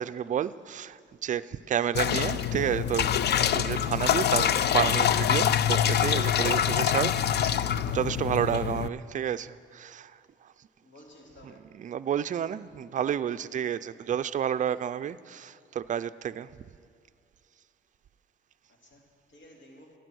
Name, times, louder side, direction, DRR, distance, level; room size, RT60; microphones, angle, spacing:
voice 1, 0.0-3.2 3.5-10.1 11.4-16.5, right 9 dB, 40° right, 0.4 m, -30 dB
sound 1, 1.9-8.9, left 9 dB, 55° left, 0.5 m, -25 dB
voice 2, 10.8-11.7 18.8-19.9, left 1 dB, 75° left, 2.7 m, -54 dB
13.5 x 10.5 x 6.2 m
cardioid pair, 90°, 20 cm